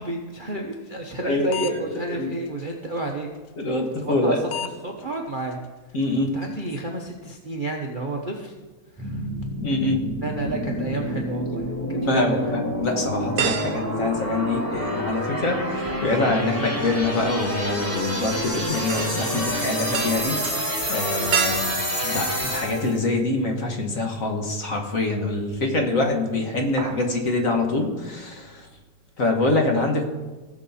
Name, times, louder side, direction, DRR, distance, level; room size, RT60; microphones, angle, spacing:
voice 1, 0.0-3.3 3.7-5.6 5.9-6.0 6.3-8.5 8.9-9.3 10.2-12.5, right 2 dB, 40° right, 1 dB, 0.8 m, -31 dB
sound 1, 1.1-1.2 1.5-2.0 2.5-2.6 4.0-4.2 4.5-4.7 5.0-5.1 5.5-5.6 6.0-6.1 6.4-6.8, left 9 dB, 80° left, 1.4 m, -32 dB
voice 2, 1.9-2.3 3.6-4.4 5.9-6.3 9.6-10.0 12.0-21.8 22.0-28.7 29.2-30.1, left 2 dB, 50° left, 2 dB, 1.7 m, -25 dB
sound 2, 9.0-23.0, equal, 5° left, 2.4 m, -28 dB
sound 3, 10.7-11.7 12.2-12.3 13.4-15.1 15.4-23.3 23.7-23.8 25.2-25.8 26.1-26.3 26.6-27.1 27.4-27.5, right 7 dB, 65° right, 1.4 m, -32 dB
17.5 x 6.4 x 4.2 m, 1.3 s
omnidirectional pair, 2.0 m